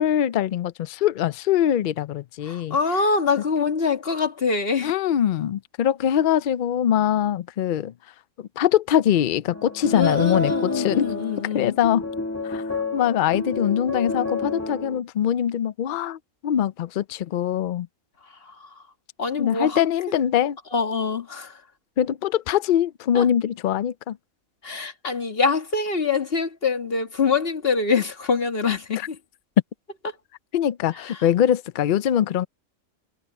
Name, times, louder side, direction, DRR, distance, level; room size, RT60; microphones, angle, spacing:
voice 1, 0.0-2.8 4.8-7.9 8.4-11.2 11.5-12.0 12.4-17.9 19.4-20.6 22.0-24.2 30.5-32.5, left 10 dB, 90° left, 0.4 m, -23 dB
voice 2, 2.4-4.9 9.9-11.8 18.4-18.7 19.2-19.8 20.7-21.6 23.1-23.3 24.6-29.2 31.1-31.2, left 5 dB, 40° left, 2.0 m, -24 dB
sound 1, 9.5-15.0, left 2 dB, 10° left, 1.2 m, -29 dB
omnidirectional pair, 1.5 m